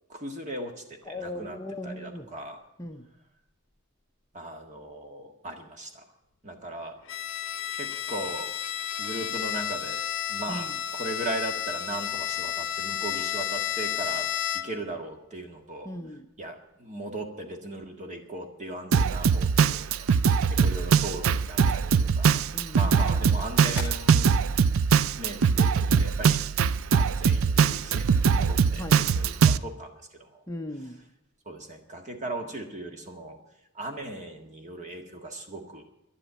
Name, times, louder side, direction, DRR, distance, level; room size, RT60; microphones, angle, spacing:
voice 1, 0.1-1.6 1.8-2.6 4.3-6.0 6.4-7.0 7.7-8.5 9.0-15.9 16.4-22.4 22.7-24.5 25.2-26.4 26.9-30.4 31.4-33.4 33.7-35.8, right 1 dB, 35° right, 4 dB, 1.7 m, -38 dB
voice 2, 1.0-2.3 2.8-3.1 10.5-10.7 15.8-16.3 22.5-23.2 28.8-29.0 30.5-31.0, left 1 dB, 15° left, 4 dB, 0.6 m, -38 dB
Bowed string instrument, 7.1-14.9, left 10 dB, 55° left, 0.8 m, -32 dB
Drum kit, 18.9-29.6, right 6 dB, 65° right, 0.4 m, -22 dB
sound 1, 20.2-25.2, left 2 dB, 10° right, 2.0 m, -45 dB
11.0 x 11.0 x 8.7 m, 0.91 s
head